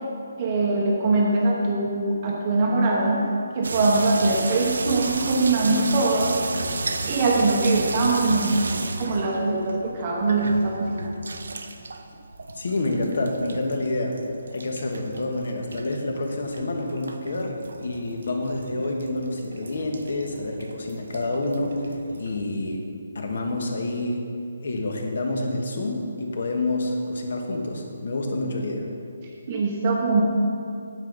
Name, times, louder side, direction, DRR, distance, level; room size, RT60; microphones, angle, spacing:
voice 1, 0.4-3.2 3.5-6.4 7.1-11.1 29.5-30.2, right 3 dB, 20° right, -2 dB, 0.8 m, -22 dB
sound 1, 3.6-22.4, right 3 dB, 75° right, 0.7 m, -34 dB
voice 2, 12.6-14.2 14.5-22.8 23.1-24.3 24.6-28.9, left 2 dB, 55° left, 2 dB, 1.4 m, -28 dB
9.5 x 8.8 x 4.0 m, 2.5 s
hypercardioid pair, 175°, 0 cm